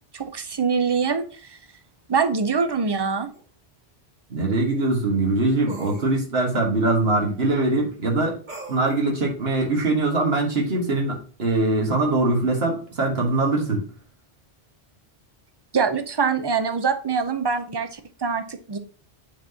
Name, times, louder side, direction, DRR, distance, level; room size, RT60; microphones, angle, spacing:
voice 1, 0.1-1.6 2.1-3.3 15.7-18.8, right 5 dB, 30° right, 9 dB, 0.5 m, -24 dB
sound 1, 3.3-3.4 5.7-6.1 8.5-9.0, right 2 dB, 45° right, 1.6 m, -37 dB
voice 2, 4.3-8.3 8.7-13.9, right 2 dB, 70° right, 0 dB, 1.8 m, -22 dB
8.5 x 4.0 x 2.8 m, 0.40 s
omnidirectional pair, 1.1 m